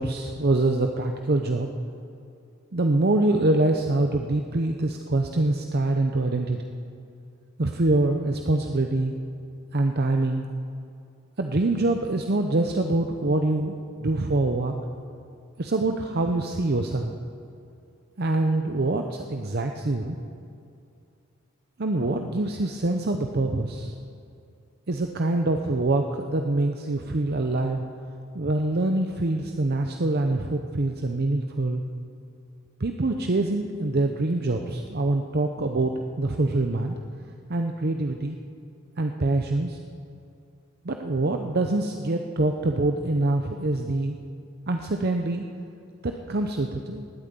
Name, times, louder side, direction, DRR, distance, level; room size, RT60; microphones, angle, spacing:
voice 1, 0.0-1.7 2.7-6.7 7.6-9.2 9.7-10.5 11.4-14.7 15.6-17.1 18.2-20.2 21.8-23.9 24.9-27.8 28.3-31.8 32.8-37.0 37.5-38.4 39.0-39.8 40.8-44.2 44.7-45.4 46.0-47.1, right 2 dB, 45° right, 4 dB, 0.8 m, -25 dB
19.0 x 9.1 x 8.3 m, 2.5 s
head